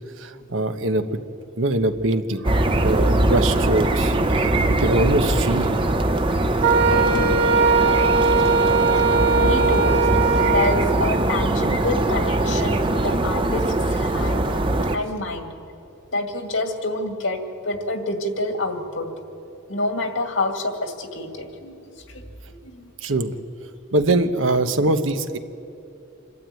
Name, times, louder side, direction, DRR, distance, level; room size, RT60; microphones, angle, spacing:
voice 1, 0.2-1.0 1.6-5.7 23.0-23.3 23.9-25.4, right 2 dB, 80° right, 8 dB, 1.2 m, -23 dB
sound 1, 2.4-15.0, right 1 dB, 25° right, 0.9 m, -21 dB
Wind instrument woodwind instrument, 6.6-11.0, right 4 dB, 50° right, 2.6 m, -19 dB
voice 2, 6.9-7.3 7.9-8.0 8.4-8.5 9.3-9.9 10.4-14.5 14.9-15.5 16.1-19.1 19.7-21.8 22.1-22.9, left 2 dB, 75° left, 5 dB, 2.3 m, -28 dB
26.5 x 12.5 x 9.1 m, 2.7 s
head